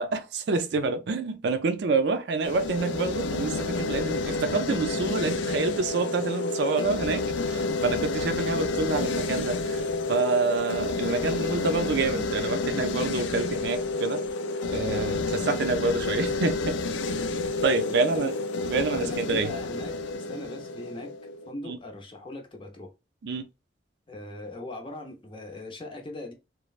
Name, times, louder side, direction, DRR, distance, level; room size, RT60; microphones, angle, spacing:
voice 1, 0.0-14.2 14.7-16.8 17.6-18.4 18.7-19.5 21.6-21.8 23.2-23.5, right 4 dB, 65° right, 0.4 m, -27 dB
sound 1, 2.4-21.5, left 3 dB, 80° left, 0.4 m, -30 dB
voice 2, 17.1-17.4 17.9-18.3 19.0-21.1 21.5-22.9 24.1-26.3, left 2 dB, 30° left, 0.7 m, -40 dB
3.0 x 2.1 x 2.4 m
head